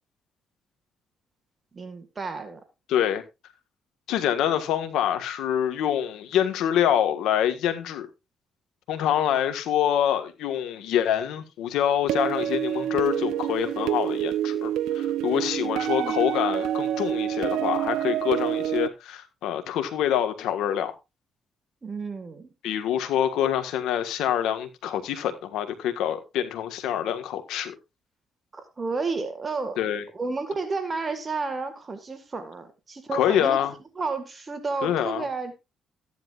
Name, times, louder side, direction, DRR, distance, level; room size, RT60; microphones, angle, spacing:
voice 1, 1.7-2.6 15.7-16.1 21.8-22.5 28.5-29.8 30.1-33.6 33.9-35.6, right 4 dB, 30° right, 1.8 m, -31 dB
voice 2, 2.9-3.2 4.1-8.1 8.9-20.9 22.6-27.7 29.8-30.0 33.1-33.7 34.8-35.2, left 10 dB, 90° left, 1.5 m, -26 dB
sound 1, 12.1-18.9, right 11 dB, 90° right, 0.5 m, -27 dB
14.0 x 10.5 x 2.5 m
cardioid pair, 90°, 0 cm